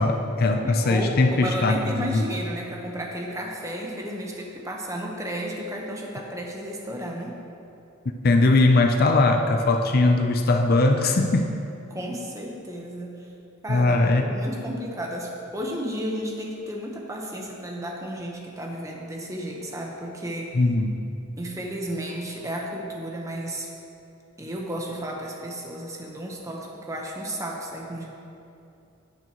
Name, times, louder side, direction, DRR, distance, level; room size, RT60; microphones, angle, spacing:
voice 1, 0.0-2.3 8.2-11.5 13.7-14.2 20.5-20.9, left 2 dB, 45° left, 4 dB, 0.5 m, -20 dB
voice 2, 0.6-7.4 11.9-13.3 13.6-20.5 21.4-23.7 24.4-28.1, equal, 15° right, -1 dB, 1.0 m, -33 dB
16.5 x 6.3 x 3.0 m, 2.7 s
head